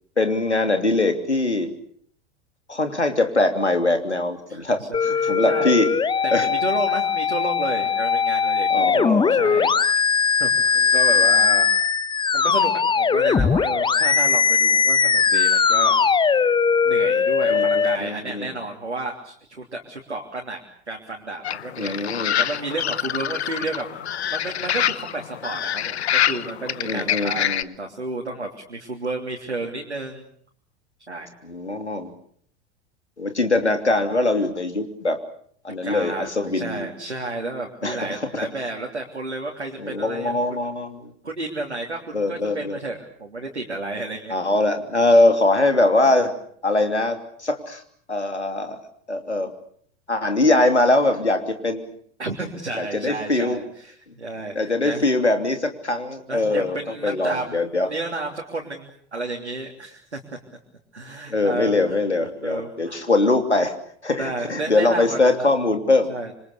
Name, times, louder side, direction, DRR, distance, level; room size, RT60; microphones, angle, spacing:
voice 1, 0.2-1.7 2.7-5.9 6.3-6.5 8.7-9.7 17.5-18.5 21.8-22.3 26.8-27.7 31.4-32.1 33.2-35.2 35.6-36.9 37.8-38.2 39.8-41.1 42.1-42.8 44.3-46.3 46.6-47.8 48.1-48.8 49.1-49.5 50.1-51.9 52.7-53.6 54.5-57.9 61.3-63.7 64.0-66.1, left 2 dB, 85° left, 6 dB, 3.1 m, -22 dB
voice 2, 4.5-5.7 6.2-10.0 10.4-11.7 12.3-16.0 16.8-20.6 20.9-24.0 24.3-27.5 27.8-30.2 31.1-31.3 35.8-40.4 41.2-44.3 52.2-55.0 56.3-57.5 57.8-60.4 60.9-62.0 62.4-63.0 64.2-65.5 66.1-66.3, right 2 dB, 85° right, 0 dB, 3.2 m, -31 dB
sound 1, 4.9-18.0, left 6 dB, 15° left, 1.0 m, -20 dB
sound 2, 21.4-27.6, left 10 dB, 70° left, 1.0 m, -26 dB
27.0 x 25.5 x 6.8 m, 0.64 s
figure-of-eight pair, 80°, 33 cm